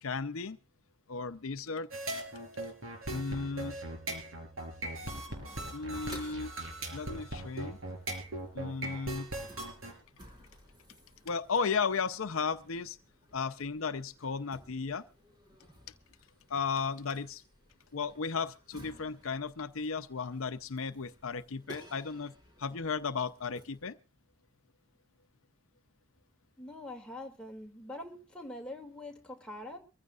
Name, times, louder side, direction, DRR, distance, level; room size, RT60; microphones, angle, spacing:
voice 1, 0.0-0.6 1.1-1.9 3.1-3.8 5.7-6.5 6.9-7.8 8.5-9.3 11.2-13.0 13.3-15.1 16.5-17.4 17.9-22.3 22.6-24.0, left 5 dB, 85° left, 0.7 m, -35 dB
sound 1, 1.9-9.9, right 2 dB, 90° right, 4.5 m, -39 dB
sound 2, 5.0-23.9, right 1 dB, 20° right, 4.7 m, -56 dB
voice 2, 26.6-29.8, left 1 dB, 5° left, 2.4 m, -44 dB
23.5 x 15.0 x 2.5 m
head